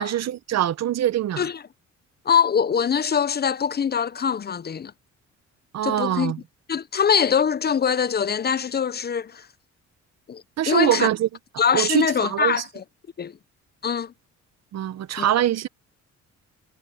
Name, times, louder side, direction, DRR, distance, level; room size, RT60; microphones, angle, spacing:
voice 1, 0.0-1.5 5.7-6.4 10.6-11.3 11.7-12.6 14.7-15.7, right 12 dB, 60° right, 0.8 m, -23 dB
voice 2, 2.3-4.9 5.8-6.3 6.7-9.5 10.3-11.1 11.6-12.8 13.2-13.4 13.8-14.1 15.2-15.3, left 7 dB, 35° left, 0.6 m, -23 dB
cardioid pair, 90°, 30 cm